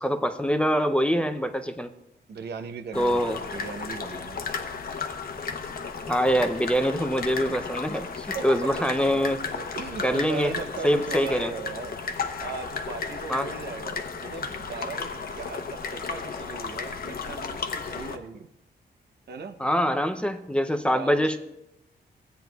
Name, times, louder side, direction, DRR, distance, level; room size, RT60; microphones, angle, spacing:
voice 1, 0.0-1.9 3.0-3.4 6.1-9.4 10.0-10.5 10.8-11.5 13.3-13.5 19.6-21.4, equal, 5° left, 6 dB, 0.5 m, -24 dB
voice 2, 2.3-4.4 8.3-8.7 9.5-12.0 12.4-18.5 19.3-19.6 20.9-21.4, right 5 dB, 70° right, 9 dB, 0.7 m, -38 dB
sound 1, 2.9-18.2, left 5 dB, 60° left, 0.8 m, -34 dB
15.5 x 9.1 x 2.3 m, 0.84 s
wide cardioid pair, 135°, 18 cm